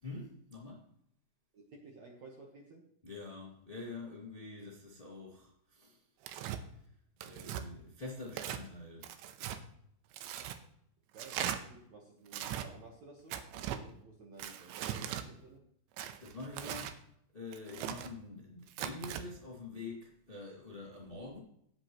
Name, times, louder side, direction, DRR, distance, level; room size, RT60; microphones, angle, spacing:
voice 1, 0.0-0.9 3.0-6.1 6.7-6.9 7.2-9.1 16.2-17.0 17.3-21.4, left 3 dB, 80° left, 0.5 m, -46 dB
voice 2, 1.5-2.9 11.1-15.7, right 3 dB, 70° right, 1.7 m, -54 dB
Tearing, 6.2-6.6 7.2-7.6 8.3-8.6 9.0-9.6 10.1-10.6 11.2-11.6 12.3-12.7 13.3-13.8 14.4-15.3 16.0-17.0 17.5-18.1 18.7-19.2, right 10 dB, 85° right, 2.9 m, -39 dB
18.5 x 7.9 x 3.1 m
omnidirectional pair, 5.2 m